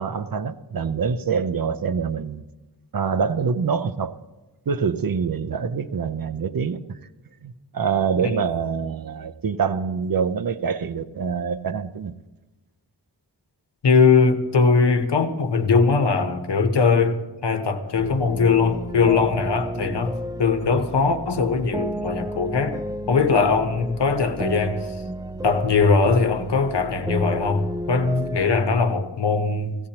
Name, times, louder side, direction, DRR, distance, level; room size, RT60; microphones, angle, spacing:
voice 1, 0.0-2.4 2.9-4.2 4.7-7.0 7.4-12.1, right 6 dB, 60° right, 0.6 m, -25 dB
voice 2, 13.8-17.2 17.4-22.8 23.1-24.8 25.4-29.8, left 4 dB, 90° left, 1.0 m, -20 dB
sound 1, 18.0-28.5, right 1 dB, 10° right, 0.3 m, -32 dB
16.5 x 15.5 x 2.9 m
wide cardioid pair, 80°, 40 cm